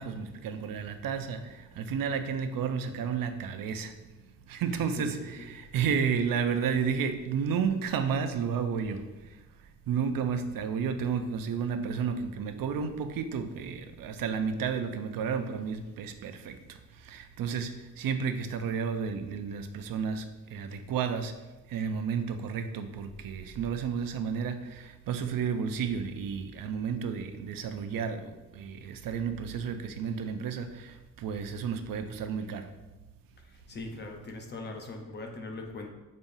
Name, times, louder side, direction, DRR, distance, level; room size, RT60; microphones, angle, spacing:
voice 1, 0.0-3.9 4.5-9.0 9.9-16.8 17.0-20.2 20.5-21.3 21.7-32.7, right 6 dB, 85° right, 8 dB, 0.6 m, -32 dB
voice 2, 33.7-35.9, left 2 dB, 30° left, 3 dB, 0.8 m, -40 dB
7.1 x 5.3 x 2.7 m, 1.1 s
wide cardioid pair, 175°, 33 cm